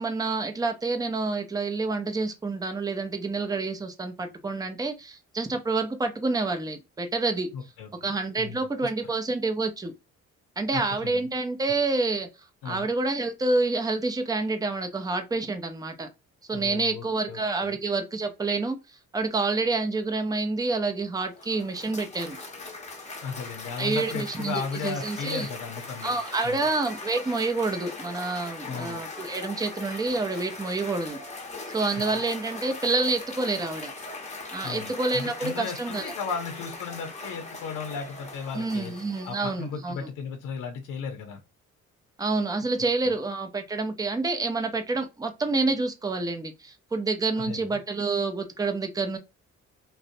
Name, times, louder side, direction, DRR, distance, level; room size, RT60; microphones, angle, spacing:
voice 1, 0.0-7.5 8.0-9.9 10.6-12.3 12.6-16.1 16.5-18.8 19.1-22.4 23.8-25.5 26.0-31.2 31.7-33.9 34.5-36.1 38.5-40.1 42.2-49.2, right 3 dB, 15° right, 0.5 m, -28 dB
voice 2, 7.5-8.1 8.4-9.1 10.7-11.2 12.6-12.9 16.5-17.8 23.2-26.1 26.4-26.6 28.7-29.0 32.1-32.2 34.6-38.9 39.2-41.4 43.0-43.1 47.4-47.7, left 5 dB, 90° left, 0.6 m, -36 dB
Cheering / Applause, 21.1-39.7, left 3 dB, 25° left, 0.8 m, -40 dB
2.5 x 2.1 x 2.4 m
cardioid pair, 90°, 30 cm